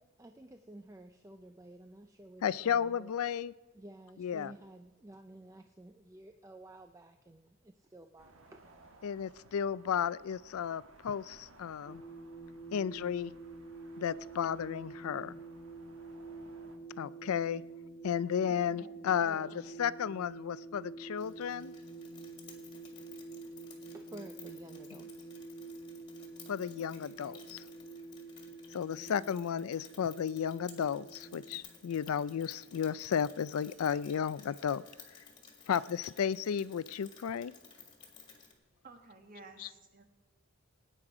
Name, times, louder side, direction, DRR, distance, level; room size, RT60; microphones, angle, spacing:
voice 1, 0.0-3.1 3.7-8.9 23.9-25.3, right 1 dB, 15° right, 6 dB, 0.4 m, -52 dB
voice 2, 2.4-3.5 4.2-4.5 9.0-12.0 12.7-13.3 14.0-15.3 17.0-17.6 18.0-19.5 19.8-21.7 26.5-27.6 28.7-34.8 35.7-37.5 39.6-39.7, left 8 dB, 85° left, 18 dB, 0.4 m, -33 dB
sound 1, 8.2-16.8, right 2 dB, 70° right, 1.3 m, -60 dB
sound 2, 11.9-31.6, right 3 dB, 40° left, 1.3 m, -48 dB
voice 3, 18.5-18.9 19.2-19.5 38.8-40.1, right 2 dB, 40° right, 5 dB, 1.4 m, -53 dB
Rain, 21.2-38.5, left 5 dB, 20° left, 1.9 m, -56 dB
19.0 x 9.1 x 4.9 m, 1.2 s
head